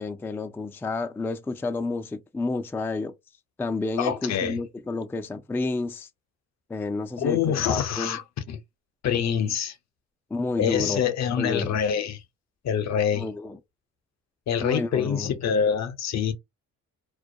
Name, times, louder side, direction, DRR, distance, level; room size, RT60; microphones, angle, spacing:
voice 1, 0.0-3.1 3.6-6.1 6.7-8.2 10.3-11.0 11.4-11.7 13.1-13.6 14.6-15.3, left 3 dB, 5° left, 0.3 m, -30 dB
voice 2, 4.0-4.6 7.2-8.2 8.5-8.6 9.0-9.8 10.6-12.2 12.6-13.3 14.5-16.3, left 8 dB, 60° left, 0.6 m, -25 dB
2.3 x 2.1 x 2.6 m
cardioid pair, 90°, 30 cm